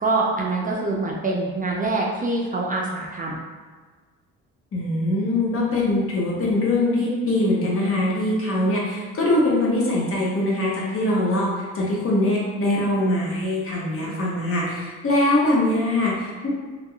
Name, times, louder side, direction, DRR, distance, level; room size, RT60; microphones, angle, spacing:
voice 1, 0.0-3.4 14.0-14.1, right 2 dB, 30° right, -2 dB, 0.4 m, -25 dB
voice 2, 4.7-16.5, left 1 dB, 45° left, -4 dB, 0.9 m, -22 dB
2.3 x 2.1 x 3.6 m, 1.5 s
cardioid pair, 90°, 30 cm